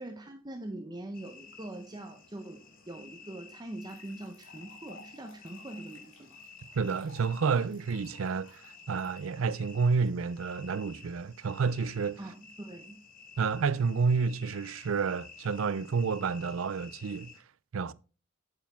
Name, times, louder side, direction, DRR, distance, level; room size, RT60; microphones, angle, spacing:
voice 1, 0.0-6.4 12.2-13.0, right 1 dB, 20° right, 0.7 m, -43 dB
sound 1, 1.1-17.4, left 5 dB, 45° left, 1.6 m, -53 dB
sound 2, 3.1-3.2 3.8-10.1, left 3 dB, 80° left, 2.9 m, -57 dB
voice 2, 6.8-12.2 13.4-17.3 17.7-17.9, right 5 dB, 75° right, 0.5 m, -30 dB
8.6 x 8.1 x 3.5 m
head